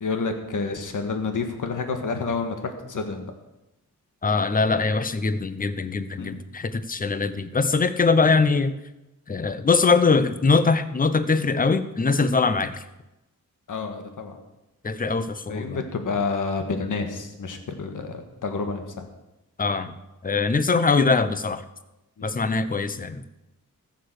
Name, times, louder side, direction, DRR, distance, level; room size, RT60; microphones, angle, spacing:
voice 1, 0.0-3.2 6.2-6.4 13.7-14.4 15.5-19.1 22.2-22.3, left 4 dB, 70° left, 5 dB, 1.7 m, -29 dB
voice 2, 4.2-8.7 9.3-12.8 14.8-15.8 19.6-20.0 20.2-21.6 22.2-23.2, left 4 dB, 25° left, 12 dB, 0.7 m, -22 dB
14.5 x 6.9 x 6.7 m, 0.96 s
wide cardioid pair, 105°, 33 cm